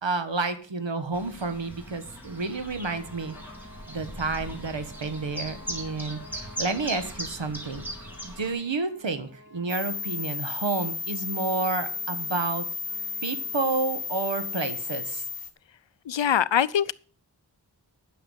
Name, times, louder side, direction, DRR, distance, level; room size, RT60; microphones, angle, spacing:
voice 1, 0.0-3.3 3.9-7.8 8.2-12.7 13.2-15.2, right 3 dB, 80° right, 1.4 m, -30 dB
Chirp tweet, 1.1-8.5, equal, 5° right, 3.6 m, -39 dB
sound 1, 2.5-15.3, equal, 25° right, 4.8 m, -52 dB
sound 2, 9.7-15.5, left 5 dB, 55° left, 1.3 m, -33 dB
voice 2, 16.1-16.9, left 9 dB, 80° left, 0.6 m, -23 dB
9.6 x 6.8 x 8.0 m
wide cardioid pair, 55°, 44 cm